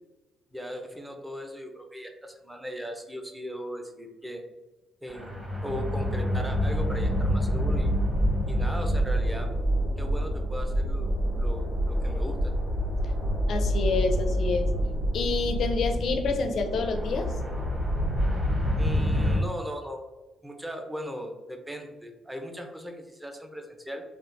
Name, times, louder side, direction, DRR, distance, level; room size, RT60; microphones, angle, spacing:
voice 1, 0.5-4.4 5.0-7.9 8.5-9.5 10.0-12.5 18.8-20.0 20.4-24.0, equal, 10° right, 3 dB, 0.6 m, -38 dB
sound 1, 5.1-19.4, equal, 25° right, 1.2 m, -27 dB
voice 2, 13.5-14.7 15.1-17.3, left 4 dB, 65° left, 6 dB, 0.5 m, -28 dB
3.6 x 2.4 x 2.5 m, 1.1 s
cardioid pair, 90°, 0 cm